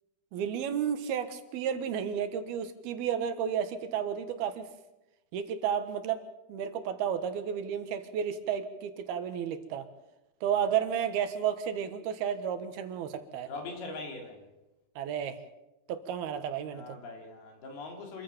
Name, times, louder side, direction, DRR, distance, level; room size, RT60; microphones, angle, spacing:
voice 1, 0.3-4.7 5.3-6.2 6.5-9.9 10.4-13.5 15.0-15.4 15.9-17.0, right 8 dB, 80° right, 9 dB, 3.4 m, -32 dB
voice 2, 13.5-14.5 16.7-18.2, left 3 dB, 80° left, 3 dB, 5.5 m, -41 dB
26.5 x 14.5 x 7.3 m, 0.95 s
omnidirectional pair, 4.4 m